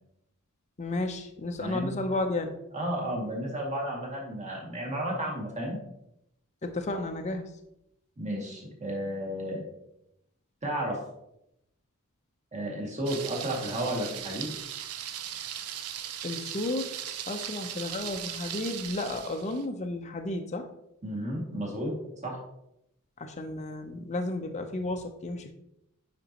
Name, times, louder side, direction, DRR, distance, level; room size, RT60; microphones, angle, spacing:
voice 1, 0.8-2.6 6.6-7.5 16.2-16.9 17.3-20.7 23.2-25.5, left 2 dB, 30° left, 4 dB, 0.6 m, -32 dB
voice 2, 1.6-2.0 2.7-5.8 8.2-9.6 10.6-11.0 12.5-14.5 21.0-21.9 22.2-22.4, right 1 dB, 35° right, -2 dB, 2.0 m, -32 dB
Thunder, 13.1-19.7, right 10 dB, 80° right, 0.6 m, -38 dB
9.0 x 5.3 x 2.9 m, 0.81 s
head